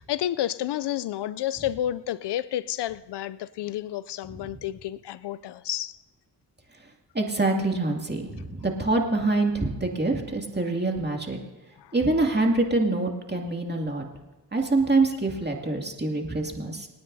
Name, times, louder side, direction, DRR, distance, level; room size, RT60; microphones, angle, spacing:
voice 1, 0.0-6.0 11.8-11.9, left 12 dB, 70° left, 0.5 m, -30 dB
voice 2, 7.1-11.4 11.9-14.1 14.5-16.9, right 2 dB, 25° right, 2.4 m, -25 dB
28.0 x 9.6 x 2.7 m
cardioid pair, 55°, 43 cm